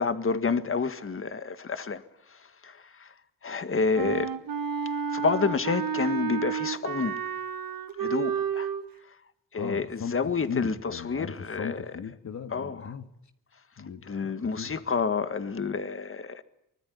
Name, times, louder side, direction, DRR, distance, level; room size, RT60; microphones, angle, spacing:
voice 1, 0.0-2.0 2.3-3.1 3.4-4.3 5.1-7.2 8.0-8.7 9.5-11.8 12.5-13.0 14.1-16.4, left 4 dB, 40° left, 1.7 m, -29 dB
Wind instrument woodwind instrument, 4.0-8.8, right 7 dB, 75° right, 1.5 m, -31 dB
voice 2, 9.5-10.2 10.5-13.1 13.8-14.8, left 6 dB, 55° left, 1.7 m, -37 dB
24.0 x 20.5 x 9.9 m
cardioid pair, 75°, 34 cm